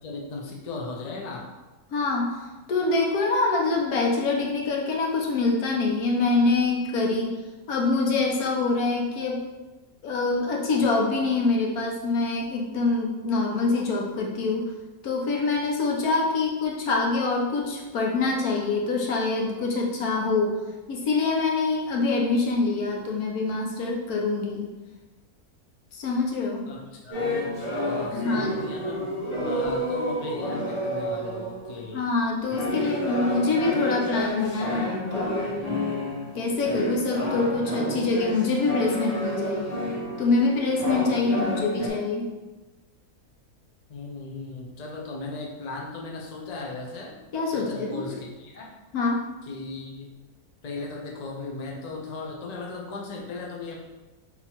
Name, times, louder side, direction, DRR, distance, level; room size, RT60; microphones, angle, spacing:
voice 1, 0.0-1.5 26.7-27.3 27.7-32.1 43.9-47.2 47.5-48.7 49.4-50.1 50.6-53.8, left 3 dB, 45° left, -1 dB, 0.5 m, -37 dB
voice 2, 1.9-2.4 2.7-7.4 7.7-9.4 10.0-14.7 15.0-20.6 20.9-24.7 25.9-26.7 28.1-28.5 31.9-35.6 36.3-39.6 40.2-42.3 47.3-48.1 48.9-49.2, left 3 dB, 80° left, -1 dB, 1.3 m, -25 dB
sound 1, 27.1-31.9 32.5-41.9, equal, 30° left, 1.1 m, -30 dB
4.0 x 2.8 x 4.4 m, 1.2 s
omnidirectional pair, 1.6 m